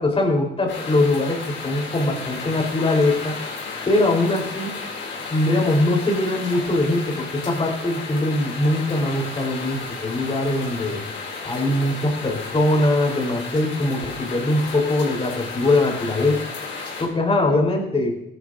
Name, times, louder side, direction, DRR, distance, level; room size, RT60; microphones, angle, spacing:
voice 1, 0.0-3.4 3.9-4.7 5.3-11.0 11.4-16.4 17.0-18.2, left 2 dB, 30° left, 1 dB, 3.6 m, -22 dB
sound 1, 0.7-17.0, left 4 dB, 75° left, 4.8 m, -33 dB
17.0 x 11.0 x 2.6 m, 0.79 s
cardioid pair, 90°, 20 cm